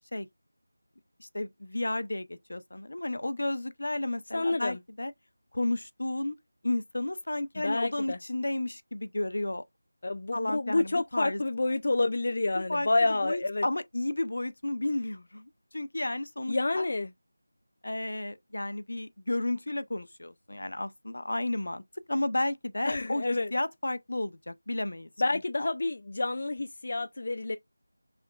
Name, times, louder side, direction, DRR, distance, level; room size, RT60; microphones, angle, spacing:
voice 1, 1.2-5.1 5.5-6.4 6.6-9.6 10.3-11.4 12.5-16.9 17.8-21.8 22.1-23.2 23.5-25.1 25.6-25.7, left 1 dB, 65° left, 0.7 m, -32 dB
voice 2, 4.3-4.8 7.6-8.2 10.0-13.6 16.5-17.1 22.9-23.5 25.2-27.6, left 2 dB, 35° left, 0.3 m, -28 dB
5.8 x 3.5 x 2.4 m
figure-of-eight pair, 180°, 0 cm